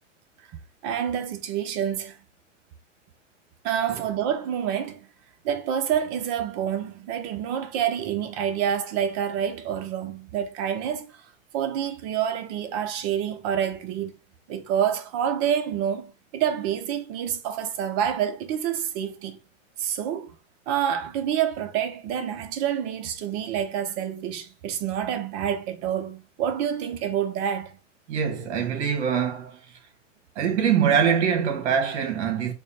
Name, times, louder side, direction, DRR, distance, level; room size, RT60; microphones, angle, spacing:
voice 1, 0.8-2.2 3.6-5.0 5.4-11.2 11.5-14.1 14.5-19.4 19.8-20.4 20.7-27.8, right 9 dB, 35° right, 0.5 m, -27 dB
voice 2, 28.1-29.6 30.3-32.5, right 7 dB, 60° right, 1.3 m, -23 dB
3.5 x 2.1 x 4.1 m
hypercardioid pair, 125°, 38 cm